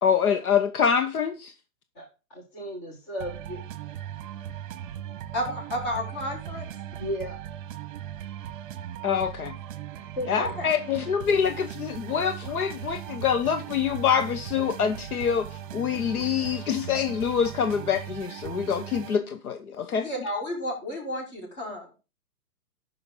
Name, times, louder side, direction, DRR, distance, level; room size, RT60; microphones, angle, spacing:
voice 1, 0.0-1.5 9.0-9.5 10.3-15.5 15.7-20.1, left 7 dB, 75° left, 1.1 m, -25 dB
voice 2, 2.0-3.6 7.0-7.4 10.0-10.5, equal, 15° left, 0.5 m, -35 dB
sound 1, 3.2-19.2, right 11 dB, 35° right, 0.9 m, -38 dB
voice 3, 5.3-6.7 10.3-10.6 19.9-21.9, left 1 dB, 35° left, 5.5 m, -32 dB
13.5 x 5.7 x 3.8 m
hypercardioid pair, 155°, 44 cm